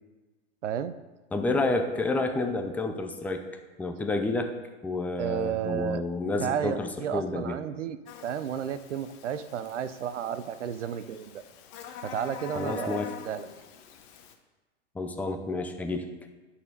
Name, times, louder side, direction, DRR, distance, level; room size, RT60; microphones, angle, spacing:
voice 1, 0.6-0.9 5.2-6.0 6.4-11.4 12.0-13.5, right 8 dB, 80° right, 13 dB, 0.6 m, -32 dB
voice 2, 1.3-3.4 3.8-4.6 4.8-7.6 12.5-13.1 14.9-16.1, left 2 dB, 5° left, 6 dB, 0.4 m, -29 dB
Buzz, 8.1-14.3, left 8 dB, 40° left, 0.9 m, -45 dB
11.0 x 4.3 x 5.2 m, 1.2 s
hypercardioid pair, 110°, 36 cm